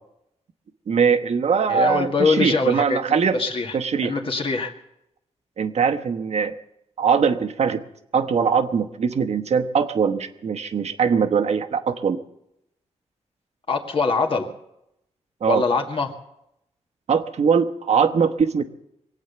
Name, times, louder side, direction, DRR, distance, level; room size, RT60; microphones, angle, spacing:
voice 1, 0.9-3.4 3.7-4.2 5.6-6.6 7.0-7.8 8.1-12.2 15.4-15.6 17.1-18.6, right 6 dB, 65° right, 8 dB, 1.1 m, -21 dB
voice 2, 1.7-3.0 3.3-3.8 4.0-4.7 13.7-14.5 15.5-16.1, left 4 dB, 50° left, 2 dB, 2.0 m, -23 dB
22.5 x 8.7 x 6.8 m, 0.82 s
cardioid pair, 90°, 12 cm